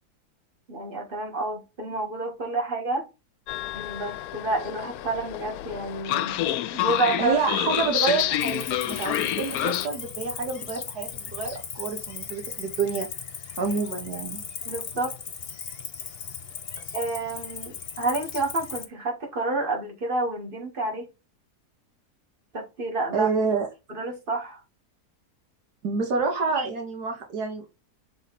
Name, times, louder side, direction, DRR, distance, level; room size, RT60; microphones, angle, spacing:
voice 1, 0.7-3.1 3.7-6.4 6.7-7.3 7.7-7.8 14.6-15.1 16.9-21.1 22.5-23.3 23.9-24.6 26.6-26.7, right 2 dB, 35° right, 2.1 m, -29 dB
Train, 3.5-9.9, left 12 dB, 75° left, 1.0 m, -28 dB
voice 2, 7.2-13.1 13.6-14.4 23.1-23.7 25.8-27.6, right 4 dB, 75° right, 1.9 m, -28 dB
Cricket, 8.4-18.9, left 6 dB, 45° left, 1.0 m, -37 dB
5.9 x 4.0 x 4.2 m
omnidirectional pair, 1.7 m